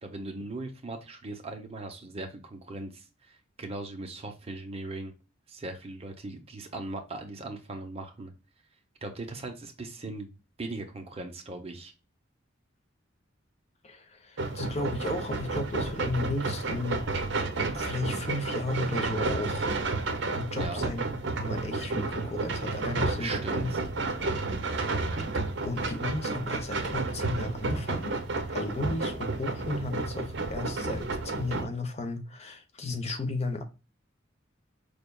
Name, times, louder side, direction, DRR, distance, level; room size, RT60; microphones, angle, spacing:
voice 1, 0.0-5.1 5.5-8.3 9.0-11.9 20.5-20.8 23.2-23.8, right 2 dB, 30° right, 0.7 m, -39 dB
voice 2, 13.8-17.3 17.7-19.7 20.4-21.0 21.4-23.7 25.2-25.3 25.6-28.2 28.5-33.6, left 2 dB, 35° left, 0.6 m, -34 dB
sound 1, 14.4-31.7, right 3 dB, 65° right, 0.7 m, -31 dB
5.1 x 3.4 x 2.2 m
head